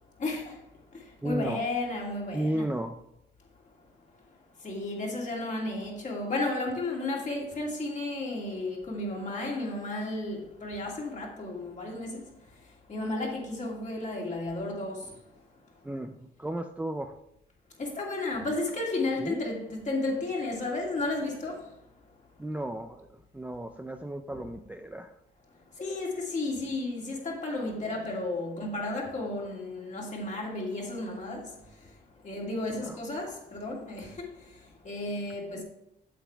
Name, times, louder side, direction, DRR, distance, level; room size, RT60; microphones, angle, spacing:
voice 1, 0.2-0.6 0.9-2.7 4.6-12.2 12.9-15.1 17.8-21.6 24.3-24.5 25.8-31.5 32.2-34.3 34.8-35.6, left 2 dB, 40° left, 2.6 m, -33 dB
voice 2, 1.2-1.6 2.3-3.0 15.8-17.1 19.2-19.5 22.4-25.1 32.8-33.0, right 1 dB, 5° right, 0.5 m, -34 dB
8.4 x 7.4 x 3.4 m
cardioid pair, 90°, 20 cm